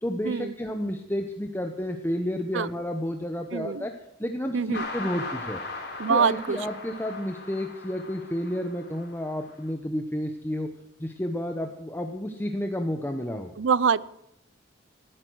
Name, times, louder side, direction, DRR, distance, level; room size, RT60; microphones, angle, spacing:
voice 1, 0.0-3.9 4.2-5.6 6.1-10.7 11.0-13.5, equal, 10° left, 5 dB, 1.0 m, -31 dB
voice 2, 3.5-3.9 4.5-4.9 6.0-6.6 13.6-14.1, right 6 dB, 75° right, 21 dB, 0.5 m, -24 dB
sound 1, 4.7-9.5, left 3 dB, 60° left, 3.9 m, -38 dB
18.5 x 12.0 x 6.3 m, 0.79 s
head